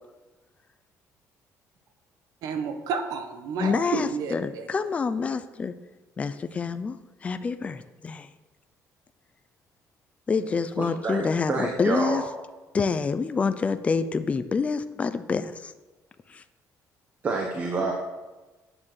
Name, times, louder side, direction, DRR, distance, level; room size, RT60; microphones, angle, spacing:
voice 1, 2.4-4.7, right 5 dB, 70° right, 6 dB, 1.6 m, -31 dB
voice 2, 3.6-5.7 6.2-7.0 7.2-8.3 10.3-12.2 12.7-15.7 16.3-16.4, left 5 dB, 20° left, 11 dB, 0.6 m, -27 dB
voice 3, 10.8-12.3 17.2-17.9, right 3 dB, 30° right, 1 dB, 1.4 m, -28 dB
11.0 x 9.0 x 6.5 m, 1.2 s
cardioid pair, 180°, 6 cm